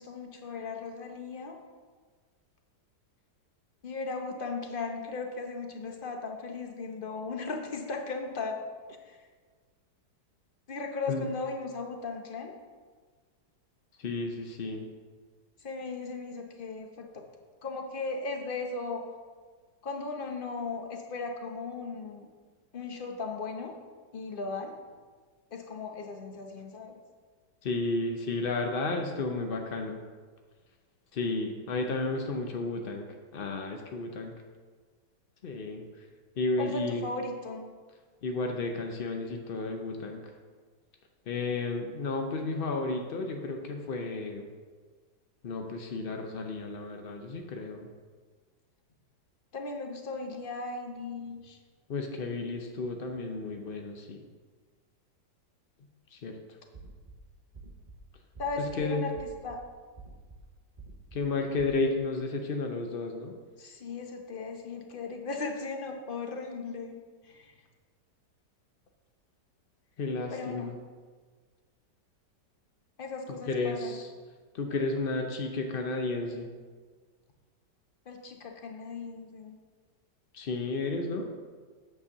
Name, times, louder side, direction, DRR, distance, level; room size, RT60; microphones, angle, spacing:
voice 1, 0.0-1.6 3.8-8.7 9.0-9.2 10.7-12.5 15.6-17.2 17.6-19.1 19.8-22.3 22.7-23.7 24.1-24.8 25.5-27.0 36.6-37.7 49.5-51.6 58.4-59.2 59.4-59.6 63.6-67.0 67.2-67.5 70.3-70.7 73.0-74.0 78.1-79.6, left 3 dB, 40° left, 3 dB, 0.8 m, -37 dB
voice 2, 14.0-14.9 27.6-30.0 31.1-33.1 33.3-34.3 35.4-35.8 36.4-37.0 38.2-40.3 41.3-44.5 45.4-47.9 51.9-54.2 56.1-56.4 58.6-59.0 61.1-63.3 70.0-70.7 73.5-74.1 74.5-76.5 80.3-81.3, left 3 dB, 70° left, 3 dB, 0.5 m, -32 dB
sound 1, 56.7-57.2 57.5-58.0 58.4-58.8 59.2-59.6 60.0-60.4 60.8-61.2 61.6-61.8, right 3 dB, 55° right, 0.4 m, -47 dB
8.5 x 4.5 x 6.5 m, 1.5 s
omnidirectional pair, 1.9 m